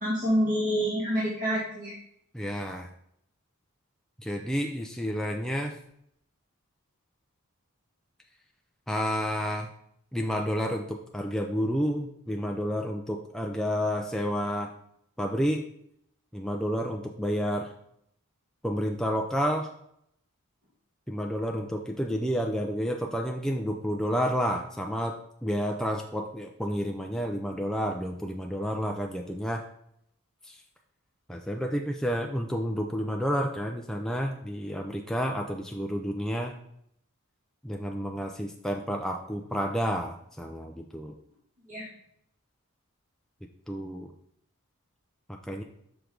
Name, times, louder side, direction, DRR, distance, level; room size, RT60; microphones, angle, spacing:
voice 1, 0.0-1.9 41.7-41.9, equal, 40° right, -7 dB, 1.8 m, -27 dB
voice 2, 2.3-2.9 4.2-5.8 8.9-9.7 10.1-14.7 15.2-15.6 16.3-17.7 18.6-19.7 21.1-29.6 30.4-30.6 31.3-36.5 37.6-41.1 43.7-44.1 45.3-45.6, equal, ahead, 2 dB, 0.4 m, -30 dB
6.0 x 5.1 x 3.8 m, 0.72 s
head